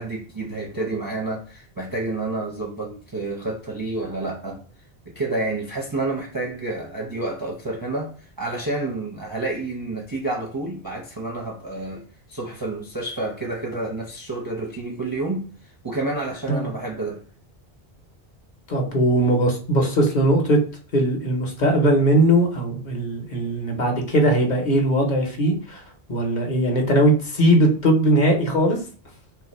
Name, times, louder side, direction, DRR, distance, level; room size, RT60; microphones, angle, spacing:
voice 1, 0.0-4.6 5.1-17.2, right 2 dB, 30° right, 0.4 m, -29 dB
voice 2, 18.7-20.6 20.9-25.8 26.1-28.8, right 1 dB, 50° left, 0.8 m, -19 dB
2.8 x 2.5 x 4.1 m
omnidirectional pair, 1.1 m